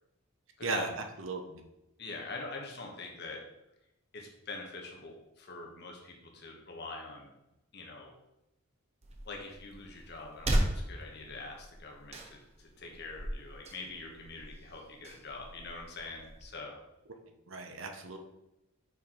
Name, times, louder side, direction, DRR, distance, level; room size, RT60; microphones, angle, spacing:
voice 1, 1.2-1.6 17.5-18.2, right 3 dB, 65° right, 5 dB, 0.9 m, -36 dB
voice 2, 2.0-3.4 4.1-7.3 7.7-8.1 9.2-16.8, left 3 dB, 50° left, 1 dB, 1.3 m, -44 dB
sound 1, 9.0-16.5, right 1 dB, 30° right, 0.7 m, -37 dB
5.8 x 4.4 x 4.4 m, 0.90 s
head